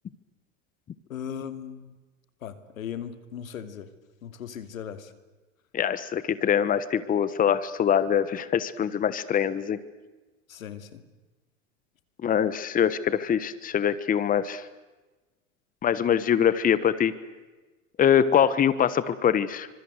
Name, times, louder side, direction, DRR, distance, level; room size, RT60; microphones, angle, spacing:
voice 1, 1.1-2.0 2.4-3.9 4.2-5.1 10.5-11.0, left 8 dB, 85° left, 11 dB, 2.8 m, -38 dB
voice 2, 5.7-9.8 12.2-14.7 15.8-17.1 18.0-19.7, left 8 dB, 20° left, 15 dB, 1.3 m, -23 dB
28.0 x 25.5 x 8.2 m, 1.2 s
hypercardioid pair, 115°, 40 cm